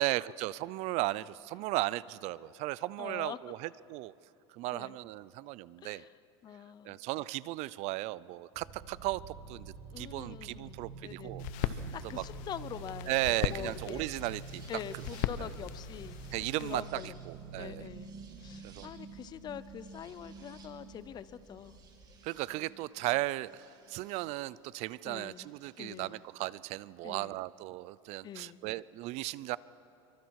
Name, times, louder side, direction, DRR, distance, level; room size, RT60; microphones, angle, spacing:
voice 1, 0.0-4.1 4.5-6.1 6.8-12.2 13.1-14.6 15.4-15.5 16.3-17.9 18.6-18.9 22.2-29.6, right 18 dB, 50° right, 20 dB, 0.5 m, -36 dB
voice 2, 3.0-3.4 4.7-5.0 5.8-6.1 6.4-7.0 9.9-14.0 14.7-16.2 16.6-17.2 17.6-21.8 25.0-25.5 25.8-26.2 27.0-27.4 28.2-28.6, left 9 dB, 30° left, 15 dB, 0.6 m, -45 dB
sound 1, 8.5-24.3 25.4-26.1, right 4 dB, 25° right, 2.4 m, -48 dB
sound 2, 9.6-22.2, right 2 dB, 10° right, 2.5 m, -59 dB
sound 3, 11.4-16.8, left 12 dB, 55° left, 0.9 m, -39 dB
26.5 x 23.5 x 4.8 m, 2.8 s
supercardioid pair, 140°, 15 cm